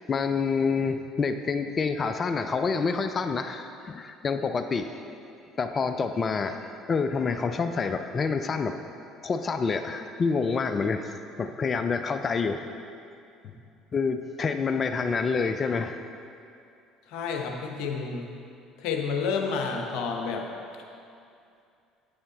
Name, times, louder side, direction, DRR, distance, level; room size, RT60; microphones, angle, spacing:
voice 1, 0.1-4.9 5.6-6.6 6.9-8.8 9.2-11.1 11.4-12.7 13.9-16.0, left 5 dB, 35° left, 8 dB, 0.4 m, -27 dB
voice 2, 17.1-18.3 18.8-20.5, left 5 dB, 60° left, 2 dB, 1.0 m, -29 dB
8.7 x 8.6 x 4.2 m, 2.6 s
figure-of-eight pair, 60°, 0 cm